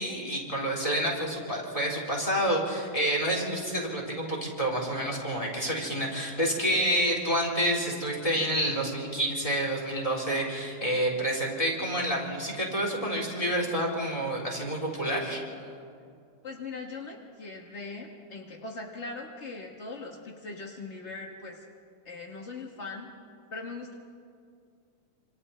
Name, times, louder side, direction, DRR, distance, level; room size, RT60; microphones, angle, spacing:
voice 1, 0.0-15.7, right 1 dB, 10° left, -2 dB, 4.1 m, -28 dB
voice 2, 16.4-21.6 22.0-23.1 23.5-23.9, left 3 dB, 55° left, 1 dB, 0.7 m, -40 dB
27.0 x 27.0 x 4.4 m, 2.3 s
omnidirectional pair, 3.6 m